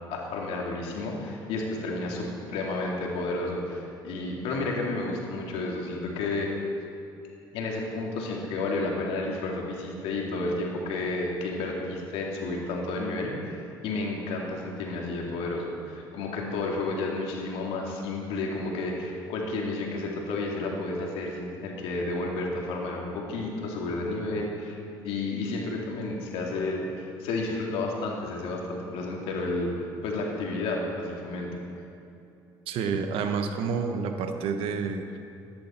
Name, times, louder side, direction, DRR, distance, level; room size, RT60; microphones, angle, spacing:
voice 1, 0.1-6.5 7.5-13.6 13.8-24.8 25.0-29.7 30.0-31.6, left 2 dB, 75° left, -1 dB, 2.5 m, -31 dB
voice 2, 32.7-35.1, right 5 dB, 70° right, 6 dB, 1.1 m, -29 dB
14.0 x 10.5 x 4.4 m, 2.7 s
supercardioid pair, 80°, 10 cm